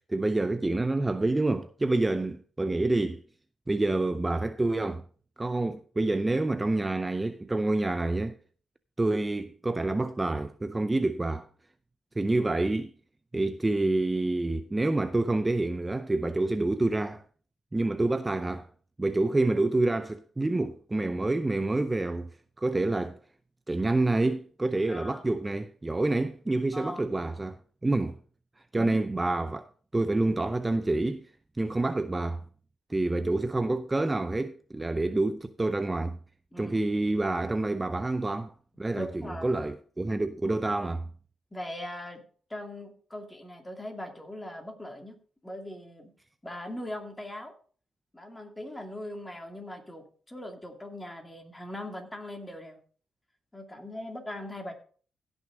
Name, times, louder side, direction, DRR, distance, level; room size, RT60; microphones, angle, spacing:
voice 1, 0.1-3.2 3.7-5.0 5.4-8.4 9.0-11.5 12.2-12.9 13.3-17.2 17.7-18.7 19.0-22.3 22.6-23.2 23.7-28.2 28.7-29.7 29.9-31.3 31.6-32.4 32.9-36.2 36.6-38.5 38.8-41.1, right 2 dB, 20° right, 0.5 m, -27 dB
voice 2, 24.8-25.2 26.7-27.1 28.8-29.0 36.5-36.8 38.9-39.6 41.5-42.2 42.5-45.2 45.4-46.1 46.4-47.5 48.1-52.8 53.5-54.7, left 1 dB, 15° left, 2.5 m, -40 dB
16.0 x 6.3 x 3.8 m
cardioid pair, 90°, 0 cm